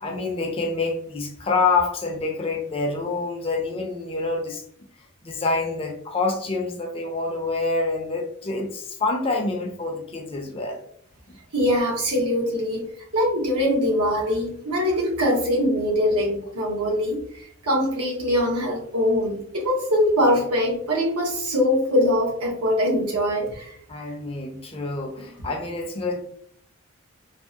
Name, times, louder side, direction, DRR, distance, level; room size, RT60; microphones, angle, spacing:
voice 1, 0.0-4.6 5.2-10.8 11.3-11.4 23.9-26.2, left 3 dB, 25° left, 2 dB, 0.4 m, -27 dB
voice 2, 11.5-12.8 13.1-23.8, equal, 90° right, -2 dB, 1.0 m, -22 dB
3.3 x 2.0 x 2.7 m, 0.64 s
head